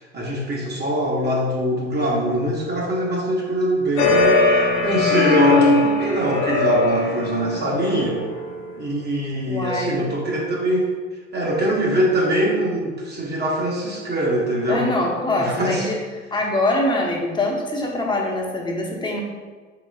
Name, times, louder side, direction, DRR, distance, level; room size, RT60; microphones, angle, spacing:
voice 1, 0.0-8.2 8.8-10.9 11.3-14.9 15.4-15.9, right 1 dB, 25° right, -3 dB, 1.0 m, -23 dB
sound 1, 4.0-8.6, left 3 dB, 75° left, 0.8 m, -20 dB
voice 2, 9.5-10.0 14.7-16.0 16.3-19.2, left 1 dB, 10° left, -1 dB, 0.9 m, -23 dB
4.9 x 3.5 x 2.4 m, 1.4 s
hypercardioid pair, 80°, 38 cm